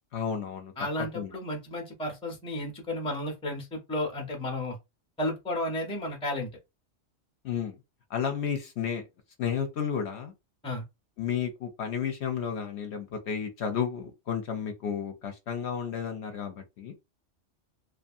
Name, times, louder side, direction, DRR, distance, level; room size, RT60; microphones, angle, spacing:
voice 1, 0.1-0.7 1.1-1.3 7.4-7.8 8.1-9.0 9.4-10.3 11.2-16.9, left 7 dB, 65° left, 0.8 m, -32 dB
voice 2, 0.8-4.8 5.2-6.5 10.6-10.8, left 1 dB, 5° left, 0.5 m, -33 dB
2.6 x 2.4 x 2.5 m
omnidirectional pair, 1.3 m